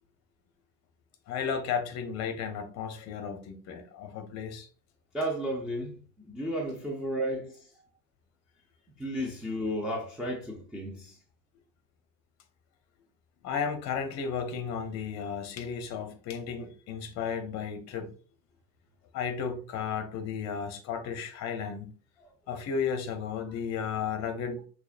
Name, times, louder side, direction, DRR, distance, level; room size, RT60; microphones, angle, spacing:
voice 1, 1.3-4.7 13.4-18.1 19.1-21.9 22.5-24.6, left 6 dB, 35° left, 0.8 m, -34 dB
voice 2, 5.1-7.6 9.0-11.2, equal, ahead, 0.4 m, -33 dB
6.0 x 2.9 x 2.5 m
figure-of-eight pair, 80°, 49 cm